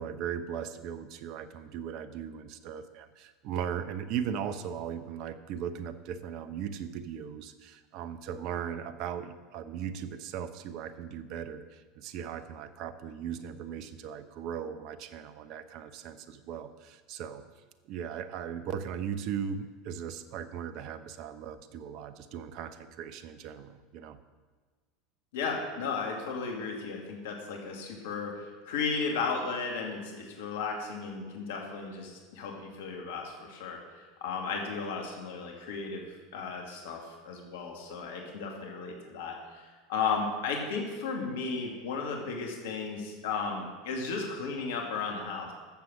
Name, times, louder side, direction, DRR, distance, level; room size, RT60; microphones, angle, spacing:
voice 1, 0.0-17.4 17.9-24.2, right 8 dB, 55° right, 12 dB, 0.9 m, -38 dB
voice 2, 25.3-33.8 34.2-37.0 37.3-45.5, left 4 dB, 70° left, 1 dB, 2.3 m, -34 dB
12.5 x 7.7 x 6.3 m, 1.5 s
hypercardioid pair, 85°, 0 cm